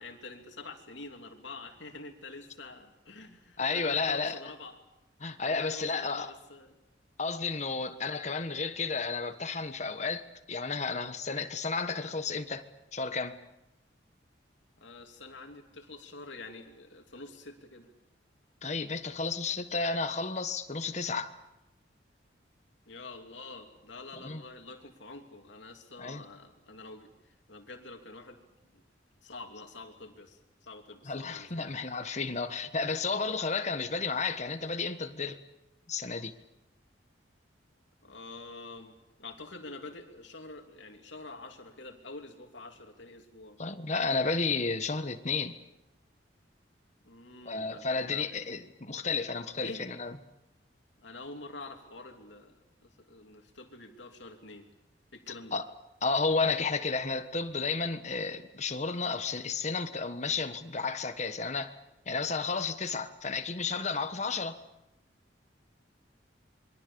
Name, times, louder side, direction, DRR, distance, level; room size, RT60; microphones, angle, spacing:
voice 1, 0.0-4.8 5.4-6.8 7.7-8.0 14.8-17.9 22.9-28.4 29.2-30.4 30.7-31.7 38.0-38.9 39.2-43.6 47.0-48.4 49.6-49.8 51.0-54.7 55.1-55.6, left 3 dB, 75° left, 3.1 m, -47 dB
voice 2, 3.6-4.4 5.2-6.3 7.2-12.6 12.9-13.4 18.6-21.3 24.2-24.4 26.0-26.2 31.0-35.4 35.9-36.3 43.6-45.6 47.4-50.2 55.5-55.7 56.0-61.8 62.1-64.6, left 4 dB, 40° left, 1.3 m, -32 dB
27.5 x 23.0 x 7.0 m
head